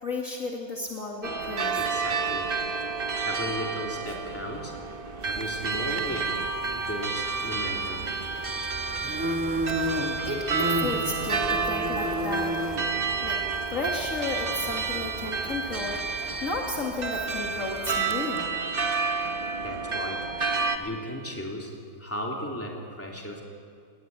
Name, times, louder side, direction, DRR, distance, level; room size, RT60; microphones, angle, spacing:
voice 1, 0.0-1.8 10.3-12.6 13.2-13.4 13.7-16.0 16.4-18.5, left 3 dB, 50° left, 0 dB, 2.3 m, -33 dB
sound 1, 1.2-20.8, right 4 dB, 35° right, 1.2 m, -30 dB
voice 2, 1.7-2.5 3.2-4.7 5.2-6.4 6.7-8.1 19.6-20.3 20.8-21.7 22.0-23.4, equal, 5° left, -1 dB, 3.2 m, -35 dB
sound 2, 5.2-18.1, equal, 10° right, 1.4 m, -35 dB
19.0 x 19.0 x 9.6 m, 2.2 s
omnidirectional pair, 1.9 m